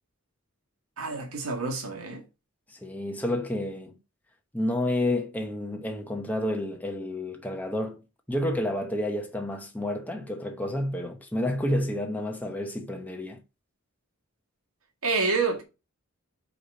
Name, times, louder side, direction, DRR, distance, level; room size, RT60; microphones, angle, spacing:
voice 1, 1.0-2.2 15.0-15.6, right 4 dB, 85° right, 1.9 m, -28 dB
voice 2, 2.7-3.9 4.5-8.0 8.3-13.4, left 1 dB, 5° left, 0.8 m, -30 dB
4.9 x 4.2 x 5.1 m
head